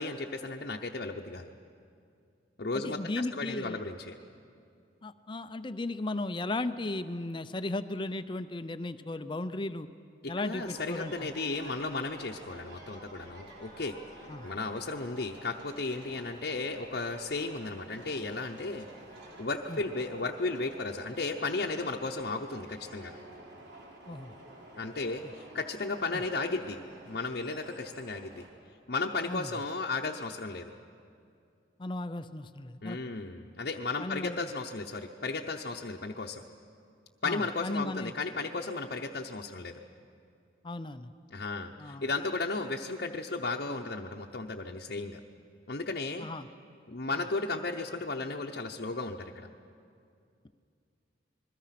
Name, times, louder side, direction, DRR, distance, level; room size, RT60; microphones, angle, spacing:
voice 1, 0.0-1.5 2.6-4.2 10.2-14.0 14.4-18.9 19.4-23.2 24.7-26.8 27.1-28.4 28.9-30.7 32.8-36.4 37.2-39.8 41.3-45.2 45.7-46.3 46.9-49.5, left 3 dB, 55° left, 0 dB, 0.9 m, -34 dB
voice 2, 2.8-3.8 5.0-9.9 10.3-11.3 14.3-14.5 19.7-19.8 24.1-24.3 26.1-26.2 29.3-29.5 31.8-33.0 34.0-34.5 37.2-38.1 40.6-41.1 41.8-42.1 46.2-46.5 47.1-47.3, left 2 dB, 25° left, 11 dB, 0.5 m, -36 dB
sound 1, 10.5-28.5, right 1 dB, 60° right, 4.1 m, -50 dB
27.5 x 21.5 x 5.9 m, 2.4 s
head